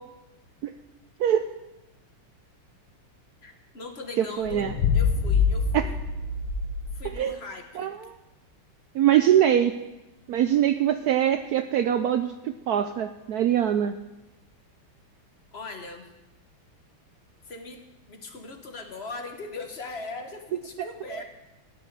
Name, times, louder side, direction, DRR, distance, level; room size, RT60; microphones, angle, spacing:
voice 1, 3.4-4.6 4.9-6.0 6.9-7.9 15.5-16.1 17.4-17.8 18.1-21.2, left 3 dB, 35° left, 5 dB, 1.4 m, -39 dB
voice 2, 4.2-4.7 5.7-5.9 7.0-7.4 7.8-7.9 8.9-9.8 10.3-12.3 12.7-14.0 21.1-21.2, right 10 dB, 85° right, 9 dB, 0.8 m, -23 dB
sound 1, 4.4-7.2, left 5 dB, 85° left, 2.0 m, -25 dB
14.5 x 6.3 x 9.7 m, 1.0 s
omnidirectional pair, 2.3 m